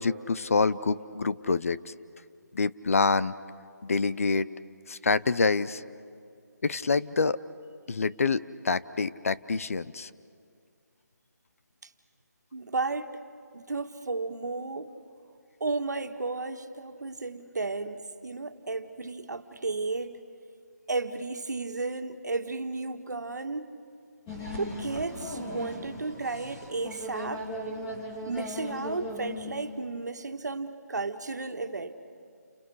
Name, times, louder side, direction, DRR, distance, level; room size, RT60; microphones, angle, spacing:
voice 1, 0.0-1.9 2.5-3.3 3.8-4.5 4.9-5.8 6.6-7.4 7.9-10.1, left 4 dB, 55° left, 15 dB, 0.7 m, -26 dB
voice 2, 12.5-13.2 13.5-14.9 15.6-20.2 20.9-23.7 24.6-27.5 28.3-31.9, right 3 dB, 75° right, 7 dB, 1.8 m, -33 dB
sound 1, 24.3-29.8, left 1 dB, 15° left, 2.3 m, -38 dB
29.5 x 27.0 x 6.5 m, 2.3 s
figure-of-eight pair, 165°, 9 cm